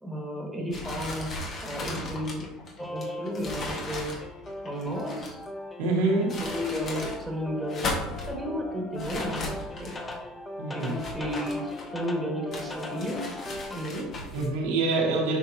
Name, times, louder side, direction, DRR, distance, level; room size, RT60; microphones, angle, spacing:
voice 1, 0.0-2.5 2.9-4.1 4.6-5.4 6.4-9.9 10.7-13.2 13.7-14.1, equal, 5° right, -1 dB, 1.9 m, -33 dB
sound 1, 0.7-5.5 6.1-7.2 7.6-8.3 9.0-10.2 10.8-12.1 12.5-14.5, left 2 dB, 45° left, 1.7 m, -37 dB
sound 2, 2.8-13.9, left 2 dB, 15° left, 0.8 m, -39 dB
voice 2, 5.8-6.4 10.6-11.0 14.0-15.4, right 3 dB, 85° right, -2 dB, 1.8 m, -26 dB
7.1 x 5.1 x 2.9 m, 1.1 s
supercardioid pair, 100°, 0 cm